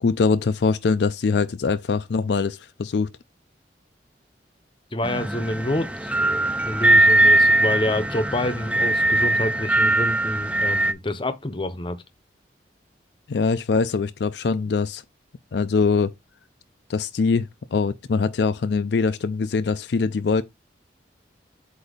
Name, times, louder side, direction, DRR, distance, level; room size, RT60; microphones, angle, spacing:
voice 1, 0.0-3.1 13.3-15.0 15.5-16.1 16.9-20.4, left 4 dB, 70° left, 0.4 m, -23 dB
voice 2, 4.9-6.1 6.6-12.0, left 1 dB, 30° left, 0.8 m, -27 dB
sound 1, 5.0-10.9, right 1 dB, 5° right, 0.4 m, -20 dB
8.1 x 2.7 x 5.1 m
head